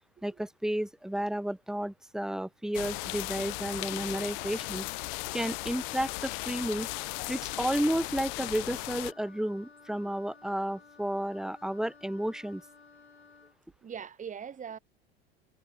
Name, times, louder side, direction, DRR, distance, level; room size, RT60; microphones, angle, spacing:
voice 1, 0.2-4.9 5.3-6.9 7.3-12.6, right 1 dB, ahead, 1.8 m, -32 dB
sound 1, 2.7-9.1, left 33 dB, 50° left, 0.5 m, -36 dB
Wind instrument woodwind instrument, 3.0-13.6, left 4 dB, 85° left, 5.0 m, -55 dB
voice 2, 13.8-14.8, right 7 dB, 25° right, 2.9 m, -41 dB
figure-of-eight pair, 80°, 32 cm